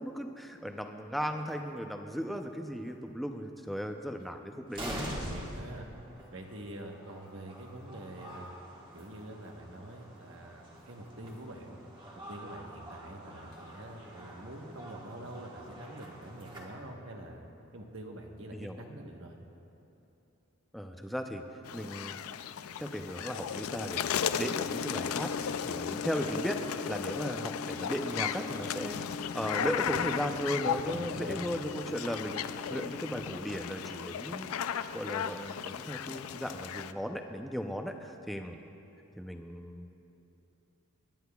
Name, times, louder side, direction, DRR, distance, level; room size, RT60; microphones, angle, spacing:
voice 1, 0.0-4.9 18.5-18.8 20.7-21.4 21.7-22.2 22.8-26.6 26.9-38.6 39.2-39.9, equal, ahead, 4 dB, 0.5 m, -36 dB
sound 1, 1.4-1.6 2.5-2.6 2.9-3.0 4.2-4.3 4.7-16.7, equal, 20° right, 1.3 m, -45 dB
voice 2, 4.9-5.9 6.3-8.5 8.9-11.8 12.3-17.4 17.7-19.4 30.9-31.4, right 1 dB, 65° right, 2 dB, 1.2 m, -45 dB
sound 2, 21.6-36.9, left 8 dB, 80° left, 0.4 m, -35 dB
sound 3, 24.2-33.2, left 3 dB, 60° left, 1.3 m, -45 dB
23.5 x 11.5 x 2.3 m, 2.9 s
head